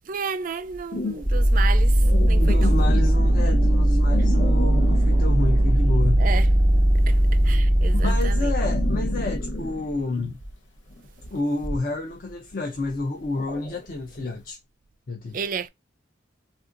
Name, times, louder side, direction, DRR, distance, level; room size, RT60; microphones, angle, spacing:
voice 1, 0.1-2.9 6.2-6.5 7.1-7.2 7.4-8.5 15.3-15.7, right 6 dB, 45° right, 0.3 m, -32 dB
sound 1, 0.6-6.2 6.5-14.4, left 2 dB, 65° left, 0.9 m, -33 dB
sound 2, 1.2-9.9, right 1 dB, 15° left, 1.3 m, -19 dB
voice 2, 2.3-6.2 7.9-10.4 11.3-14.6 15.1-15.4, left 2 dB, 45° left, 0.5 m, -29 dB
3.4 x 2.6 x 2.5 m
head